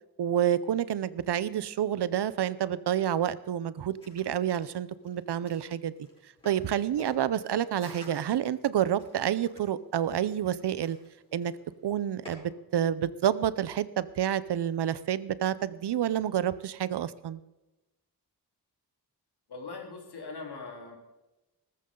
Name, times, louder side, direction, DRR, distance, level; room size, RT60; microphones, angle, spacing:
voice 1, 0.2-5.9 6.4-11.0 11.3-11.5 11.8-17.4, right 10 dB, 85° right, 16 dB, 0.8 m, -29 dB
sound 1, 3.8-12.3, left 1 dB, 15° left, 6.5 m, -52 dB
voice 2, 19.5-21.0, left 4 dB, 80° left, 1 dB, 3.7 m, -41 dB
19.0 x 14.5 x 3.9 m, 1.0 s
wide cardioid pair, 170°, 39 cm